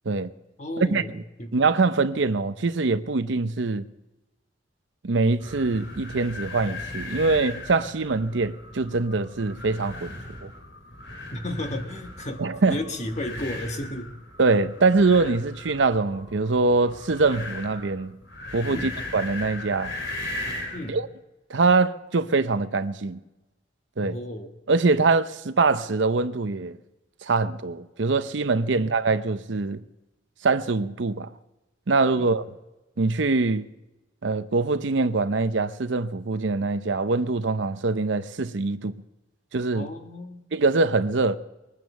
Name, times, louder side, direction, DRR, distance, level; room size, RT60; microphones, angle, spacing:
voice 1, 0.6-1.6 11.3-14.1 18.7-19.0 20.7-21.0 24.0-24.5 28.7-29.0 32.1-32.3 39.7-40.5, left 1 dB, 35° left, 1.4 m, -34 dB
voice 2, 1.5-3.9 5.0-10.1 10.4-10.5 12.4-12.8 14.4-18.1 18.5-19.9 20.9-21.1 21.5-23.2 24.0-24.2 24.7-26.8 27.2-29.8 30.4-31.3 31.9-32.5 33.0-33.7 34.2-38.9 39.5-39.9 40.5-41.4, right 3 dB, 70° right, 0.7 m, -23 dB
sound 1, 5.4-20.9, left 2 dB, 75° left, 3.6 m, -38 dB
21.0 x 9.3 x 7.1 m
head